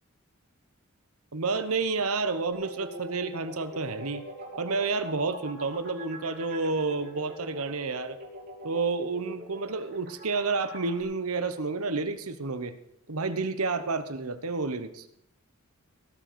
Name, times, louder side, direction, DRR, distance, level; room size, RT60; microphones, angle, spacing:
voice 1, 1.3-4.2 4.6-8.2 8.6-12.7 13.1-15.1, right 4 dB, 80° right, 11 dB, 1.1 m, -30 dB
sound 1, 2.5-11.0, right 1 dB, 45° right, 3.2 m, -43 dB
17.5 x 6.5 x 6.8 m, 0.74 s
head